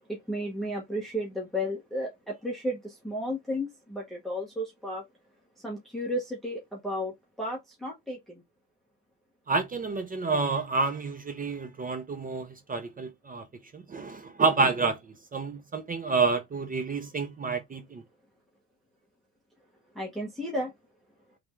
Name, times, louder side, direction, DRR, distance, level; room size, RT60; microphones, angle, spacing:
voice 1, 0.1-5.0 5.6-7.1 7.4-8.4 19.9-20.7, equal, ahead, 1.0 m, -33 dB
voice 2, 9.5-13.4 13.7-18.0, right 4 dB, 20° right, 0.4 m, -29 dB
3.4 x 3.4 x 3.0 m
cardioid pair, 145°, 50 cm